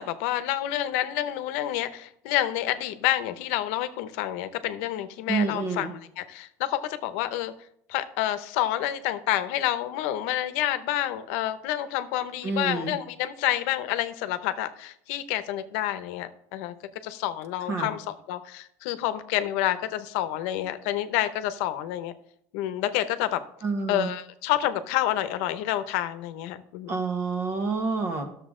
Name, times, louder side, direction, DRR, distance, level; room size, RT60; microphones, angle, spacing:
voice 1, 0.0-5.9 6.2-7.5 7.9-16.7 17.0-22.1 22.5-23.4 23.9-27.0, left 13 dB, 85° left, 12 dB, 0.8 m, -28 dB
voice 2, 5.3-5.9 12.4-12.9 17.7-17.9 23.6-24.1 26.9-28.3, right 4 dB, 40° right, 7 dB, 1.4 m, -28 dB
12.0 x 6.8 x 3.7 m, 0.72 s
cardioid pair, 140°, 7 cm